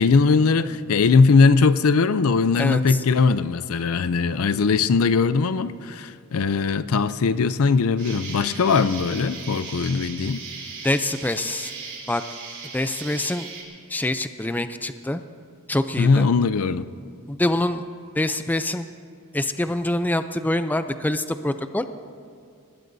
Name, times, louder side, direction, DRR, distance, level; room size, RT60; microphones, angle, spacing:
voice 1, 0.0-10.4 16.0-16.9, left 4 dB, 75° left, 14 dB, 0.5 m, -20 dB
voice 2, 2.6-3.0 10.8-11.7 12.1-12.2 12.7-13.5 13.9-15.2 15.7-16.3 17.3-17.9 18.2-18.9 19.3-21.9, left 1 dB, 10° left, 10 dB, 0.4 m, -25 dB
Insect, 8.0-13.6, right 5 dB, 55° right, 3.5 m, -38 dB
24.5 x 19.5 x 2.7 m, 2.3 s
head